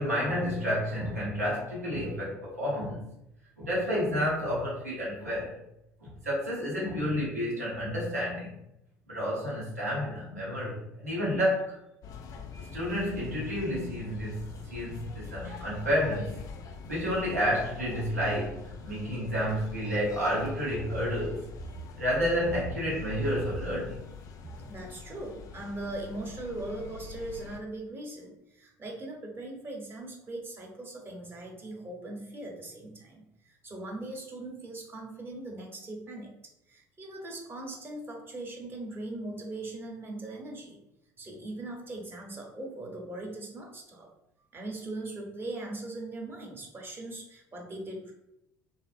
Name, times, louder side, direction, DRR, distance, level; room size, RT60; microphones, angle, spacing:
voice 1, 0.0-3.0 3.6-5.6 6.0-8.5 9.1-11.8 12.6-16.4 16.9-21.4 22.0-24.1, equal, 90° right, -6 dB, 0.8 m, -30 dB
sound 1, 12.0-27.6, left 5 dB, 45° left, 0.4 m, -44 dB
voice 2, 24.7-36.3 36.7-40.8 41.2-44.1 44.5-48.1, right 2 dB, 25° right, 0 dB, 0.8 m, -40 dB
2.6 x 2.0 x 2.4 m, 0.83 s
figure-of-eight pair, 60°, 8 cm